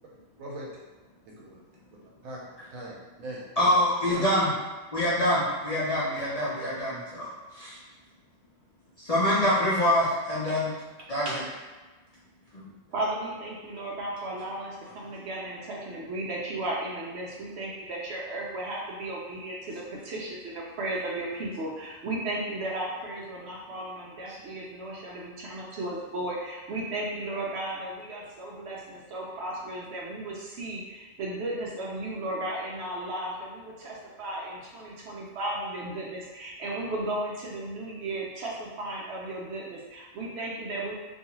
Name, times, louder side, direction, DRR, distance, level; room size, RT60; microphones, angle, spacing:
voice 1, 1.3-1.6 2.2-2.4 2.7-3.8 4.1-4.3 6.6-6.7, right 1 dB, 90° right, -4 dB, 1.1 m, -40 dB
voice 2, 3.6-4.5 4.9-7.3 7.5-7.8 9.0-10.7 11.1-11.3 12.5-12.6, left 1 dB, 50° left, -9 dB, 0.4 m, -25 dB
voice 3, 12.9-40.9, right 1 dB, 65° right, -3 dB, 0.7 m, -35 dB
2.6 x 2.3 x 2.9 m, 1.2 s
omnidirectional pair, 1.4 m